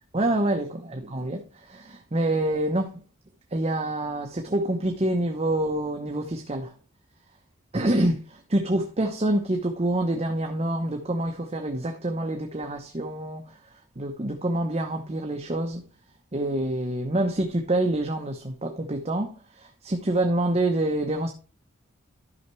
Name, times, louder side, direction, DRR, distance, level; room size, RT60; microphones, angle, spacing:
voice 1, 0.1-3.0 3.5-6.7 7.7-15.8 16.3-21.3, right 1 dB, 30° right, 0.8 m, -27 dB
12.5 x 5.7 x 3.2 m
head